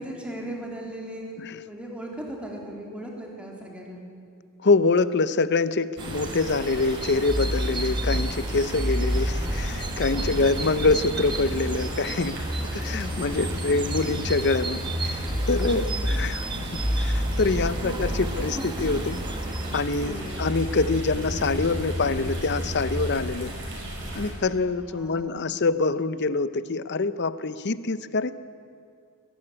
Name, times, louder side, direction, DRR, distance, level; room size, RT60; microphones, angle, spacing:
voice 1, 0.0-1.4 1.7-4.1 10.1-10.8 13.4-14.1 15.6-16.1 17.5-17.9 18.2-18.9 20.0-20.5 24.9-25.4, right 1 dB, 5° right, -1 dB, 3.5 m, -38 dB
voice 2, 4.6-12.5 12.7-16.4 16.7-19.2 19.7-23.5 24.1-28.3, left 3 dB, 55° left, 15 dB, 0.7 m, -25 dB
sound 1, 6.0-19.8, right 3 dB, 20° right, 1.1 m, -37 dB
sound 2, 6.0-24.3, right 1 dB, 55° right, 5.9 m, -36 dB
sound 3, 7.3-23.2, equal, 15° left, 2.3 m, -30 dB
21.5 x 13.5 x 9.9 m, 2.3 s
head